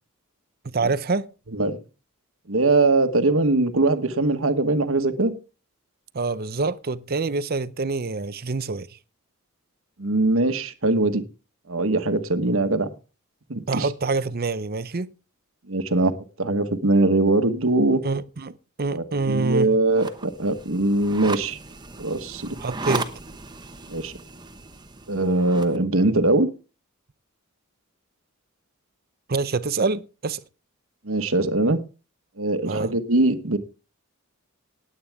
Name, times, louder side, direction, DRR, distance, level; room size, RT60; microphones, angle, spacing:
voice 1, 0.6-1.2 6.1-8.9 13.7-15.1 18.0-19.7 22.6-23.1 29.3-30.4 32.7-32.9, right 3 dB, 45° right, 0.7 m, -26 dB
voice 2, 2.5-5.3 10.0-11.2 11.7-12.9 13.5-13.9 15.7-16.1 16.4-18.0 18.9-21.6 22.0-22.5 23.9-24.1 25.1-26.5 31.0-31.8 32.4-33.6, right 2 dB, 65° right, 1.3 m, -21 dB
sound 1, 19.9-25.8, right 3 dB, 20° right, 1.0 m, -35 dB
18.5 x 8.8 x 3.6 m
head